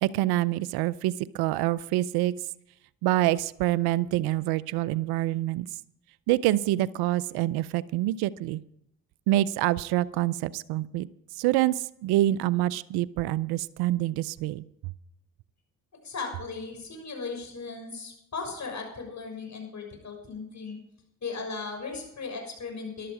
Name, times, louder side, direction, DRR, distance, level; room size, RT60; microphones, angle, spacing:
voice 1, 0.0-2.3 3.0-5.7 6.3-8.6 9.3-11.1 11.4-14.6, right 15 dB, 85° right, 20 dB, 0.5 m, -26 dB
voice 2, 16.0-20.8 21.2-23.1, left 4 dB, 50° left, 2 dB, 6.2 m, -37 dB
14.5 x 12.0 x 4.9 m, 0.75 s
supercardioid pair, 55°, 37 cm